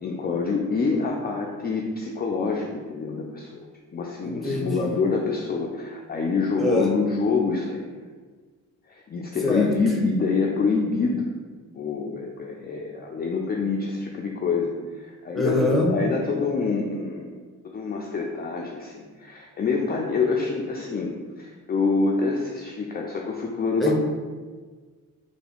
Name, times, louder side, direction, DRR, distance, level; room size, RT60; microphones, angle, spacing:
voice 1, 0.0-3.7 3.9-7.9 8.9-11.3 11.7-17.4 17.7-23.9, left 4 dB, 30° left, 0 dB, 0.4 m, -26 dB
voice 2, 4.2-4.9 6.6-6.9 9.4-9.7 15.3-15.9 23.8-23.9, left 2 dB, ahead, -1 dB, 0.7 m, -23 dB
3.3 x 2.2 x 3.4 m, 1.4 s
cardioid pair, 70°, 35 cm